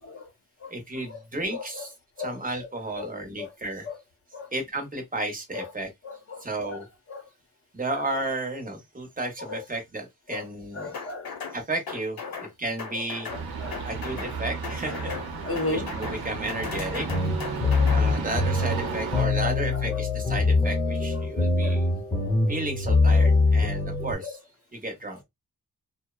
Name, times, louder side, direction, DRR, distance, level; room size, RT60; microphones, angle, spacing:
voice 1, 0.7-3.9 4.5-5.9 6.4-6.9 7.7-10.9 11.5-13.3 13.8-15.1 15.7-17.1 17.9-21.9 22.5-24.4 24.7-25.2, right 2 dB, 25° right, 0.6 m, -33 dB
voice 2, 1.5-1.8 2.2-2.7 3.0-3.1 3.4-3.5 3.8-4.0 4.3-4.5 5.5-5.7 6.0-6.8 7.1-7.3 7.9-8.0 9.4-9.6 10.3-10.4 10.7-11.3 12.2-12.4 12.9-13.8 14.8-15.9 17.4-17.5 17.8-17.9 19.4-20.0 21.1-21.3 21.6-21.7 23.2-23.3 24.2-24.4, left 3 dB, 40° left, 0.7 m, -36 dB
sound 1, 10.9-11.6 11.9-12.5 12.8-13.4 13.7-14.3 14.6-15.3 15.6-16.2 16.5-18.0, left 5 dB, 80° left, 0.8 m, -37 dB
sound 2, 13.3-19.3, right 4 dB, 85° right, 0.7 m, -34 dB
sound 3, 17.1-24.1, left 3 dB, 10° left, 0.8 m, -23 dB
2.7 x 2.0 x 2.3 m
wide cardioid pair, 170°, 36 cm